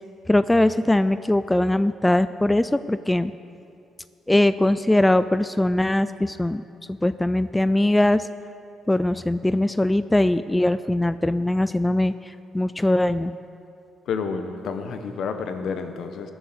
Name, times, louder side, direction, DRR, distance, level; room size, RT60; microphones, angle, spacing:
voice 1, 0.3-3.3 4.3-6.6 6.9-8.3 8.9-13.3, left 1 dB, 10° left, 13 dB, 0.3 m, -21 dB
voice 2, 14.1-16.3, left 5 dB, 70° left, 7 dB, 1.2 m, -29 dB
17.5 x 7.8 x 6.8 m, 2.6 s
cardioid pair, 90°, 0 cm